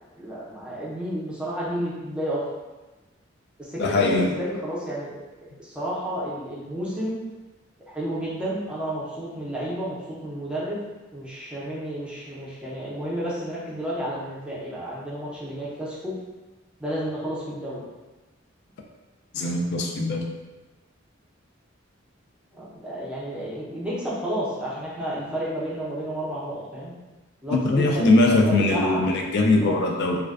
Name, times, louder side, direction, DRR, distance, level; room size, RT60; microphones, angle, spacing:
voice 1, 0.1-2.4 3.6-7.2 7.9-10.8 11.1-16.1 16.8-17.8 22.5-26.9 27.4-29.0 29.6-29.8, equal, 5° right, -8 dB, 0.5 m, -31 dB
voice 2, 3.8-4.3 19.3-20.3 27.5-30.2, left 2 dB, 60° left, 1 dB, 0.4 m, -21 dB
2.4 x 2.2 x 2.3 m, 1.2 s
head